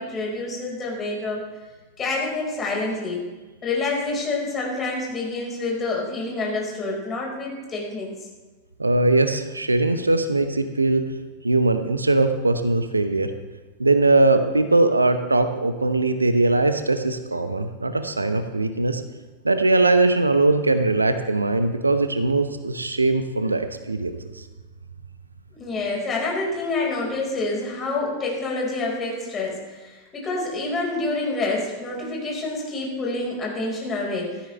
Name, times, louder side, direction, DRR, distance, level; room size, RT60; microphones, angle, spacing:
voice 1, 0.0-1.4 2.0-3.2 3.6-8.1 25.6-34.4, left 2 dB, 25° left, -2 dB, 4.9 m, -27 dB
voice 2, 8.8-11.1 11.4-13.3 13.8-19.0 19.4-24.2, right 2 dB, 80° right, 9 dB, 0.9 m, -20 dB
16.0 x 13.0 x 3.3 m, 1.3 s
figure-of-eight pair, 90°, 0 cm